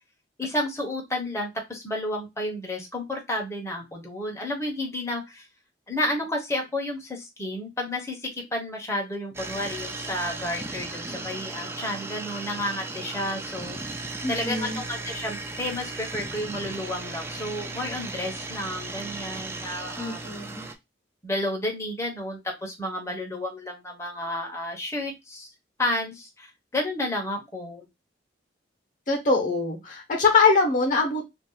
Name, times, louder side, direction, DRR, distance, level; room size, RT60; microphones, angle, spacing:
voice 1, 0.4-5.5 5.9-14.0 14.3-20.3 21.2-25.5 25.8-27.8, left 1 dB, 15° left, 0 dB, 0.9 m, -31 dB
sound 1, 9.3-20.7, right 3 dB, 15° right, 0.4 m, -36 dB
voice 2, 14.2-14.8 20.0-20.6 29.1-31.2, left 4 dB, 45° left, 2 dB, 1.0 m, -23 dB
2.6 x 2.4 x 3.8 m, 0.21 s
head